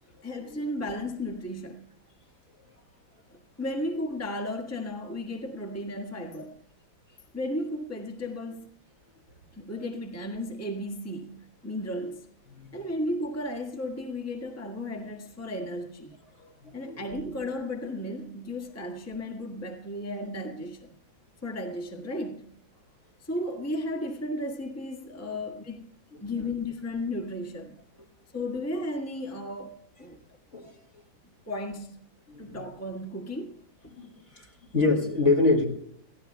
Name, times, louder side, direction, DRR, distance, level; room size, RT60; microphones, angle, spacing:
voice 1, 0.2-1.8 3.3-6.6 7.3-8.7 9.5-12.3 12.7-16.2 16.7-20.9 21.4-22.5 23.2-25.9 26.2-27.7 28.3-30.2 31.2-32.0 32.4-33.6, left 1 dB, 10° left, 1.3 m, -34 dB
voice 2, 16.4-17.0 30.5-30.7 32.3-32.6 34.0-34.5 34.7-35.6, left 3 dB, 35° left, 2.4 m, -26 dB
23.0 x 16.0 x 2.2 m
omnidirectional pair, 2.1 m